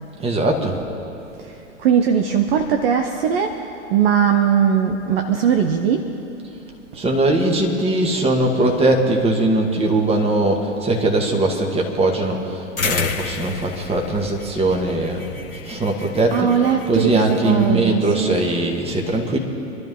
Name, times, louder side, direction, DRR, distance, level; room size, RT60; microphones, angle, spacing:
voice 1, 0.2-0.8 6.9-15.3 15.6-16.5 16.9-19.4, right 2 dB, 15° right, 2 dB, 2.0 m, -20 dB
voice 2, 1.8-6.1 15.9-18.4, right 8 dB, 45° right, 6 dB, 1.0 m, -20 dB
sound 1, 12.8-17.7, left 5 dB, 90° left, 1.4 m, -30 dB
26.0 x 12.0 x 3.8 m, 2.8 s
figure-of-eight pair, 105°, 40 cm